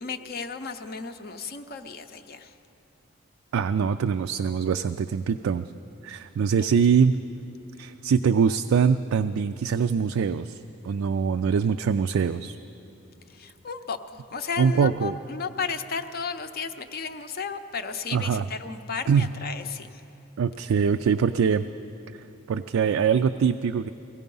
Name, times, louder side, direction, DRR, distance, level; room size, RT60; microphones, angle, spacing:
voice 1, 0.0-2.5 6.6-6.7 13.3-20.0, left 5 dB, 45° left, 8 dB, 0.5 m, -34 dB
voice 2, 3.5-5.7 6.0-7.2 7.8-12.6 14.6-15.1 18.1-18.4 19.1-19.3 20.4-21.6 22.5-23.9, right 6 dB, 70° right, 8 dB, 0.3 m, -23 dB
17.0 x 15.5 x 5.4 m, 2.9 s
head